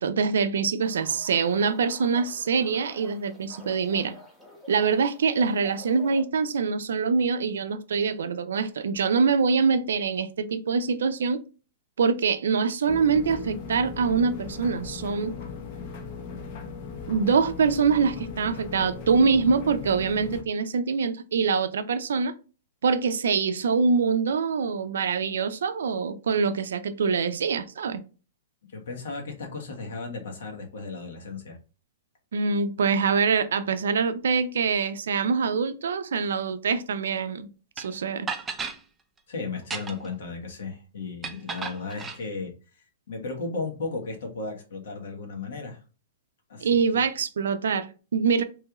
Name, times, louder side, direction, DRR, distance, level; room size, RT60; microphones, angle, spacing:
voice 1, 0.0-4.1 4.7-11.4 12.0-15.4 17.1-22.3 22.8-28.0 32.3-37.5 37.8-38.3 46.6-48.4, right 5 dB, 80° right, 0.4 m, -24 dB
sound 1, 0.8-6.2, left 1 dB, 5° left, 0.7 m, -48 dB
sound 2, 12.9-20.4, left 5 dB, 45° left, 0.6 m, -38 dB
voice 2, 28.7-31.6 39.3-42.5 43.1-45.8 46.5-46.8, left 3 dB, 75° left, 1.1 m, -35 dB
sound 3, 37.8-37.9 38.3-38.8 39.6-40.1 41.2-42.2, right 5 dB, 15° right, 0.3 m, -34 dB
3.1 x 2.4 x 2.9 m
hypercardioid pair, 145°, 0 cm